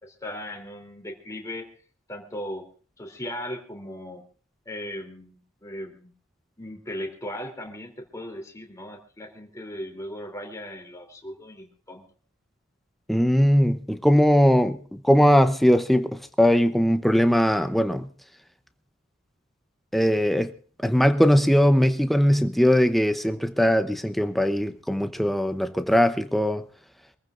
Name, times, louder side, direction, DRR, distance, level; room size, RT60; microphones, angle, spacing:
voice 1, 0.0-1.7 2.1-2.6 3.0-4.2 4.6-6.1 6.6-12.0, left 1 dB, 15° left, 3.2 m, -37 dB
voice 2, 13.1-18.1 19.9-20.5 20.8-26.6, equal, ahead, 0.8 m, -20 dB
25.5 x 15.0 x 2.6 m
head